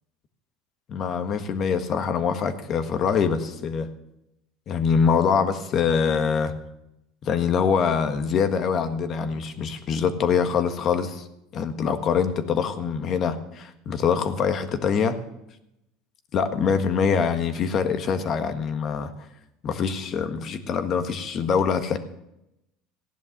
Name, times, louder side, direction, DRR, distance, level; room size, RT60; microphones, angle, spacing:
voice 1, 0.9-3.9 4.7-6.5 7.2-11.3 11.5-15.2 16.3-19.1 19.6-22.0, left 6 dB, 40° left, 8 dB, 1.6 m, -24 dB
16.0 x 10.5 x 6.7 m, 0.85 s
cardioid pair, 135°, 0 cm